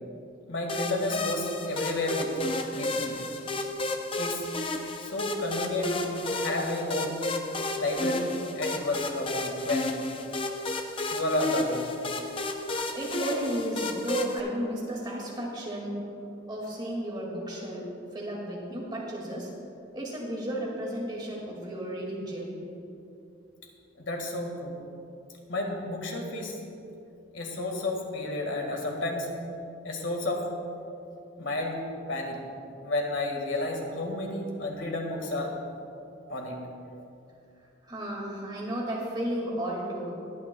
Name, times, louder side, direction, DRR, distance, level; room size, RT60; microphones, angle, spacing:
voice 1, 0.5-3.2 4.2-4.5 5.0-7.2 7.8-10.0 11.1-11.9 24.0-24.8 25.5-26.6 27.3-29.3 29.8-30.5 31.4-31.8 32.1-32.4 32.8-35.5 36.3-36.6, left 2 dB, 75° left, 1 dB, 1.8 m, -31 dB
sound 1, 0.7-14.4, left 2 dB, 25° left, 0.6 m, -32 dB
voice 2, 12.9-16.0 16.5-17.9 18.1-19.5 19.9-22.7 37.8-40.1, right 1 dB, 20° right, -3 dB, 2.1 m, -33 dB
21.0 x 9.6 x 2.3 m, 2.7 s
head